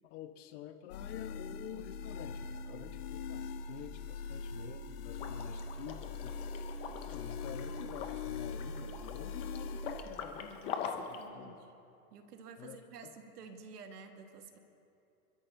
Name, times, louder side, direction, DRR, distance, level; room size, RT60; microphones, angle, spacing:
voice 1, 0.0-6.5 7.1-11.6 12.6-13.1, left 11 dB, 50° left, 8 dB, 1.0 m, -48 dB
sound 1, 0.9-10.0, left 4 dB, 80° left, 1.1 m, -42 dB
Liquid, 5.1-11.2, left 7 dB, 15° left, 0.3 m, -44 dB
voice 2, 10.9-11.7 12.1-14.6, right 5 dB, 85° right, 5 dB, 1.7 m, -51 dB
28.0 x 13.0 x 2.7 m, 2.7 s
hypercardioid pair, 140°, 46 cm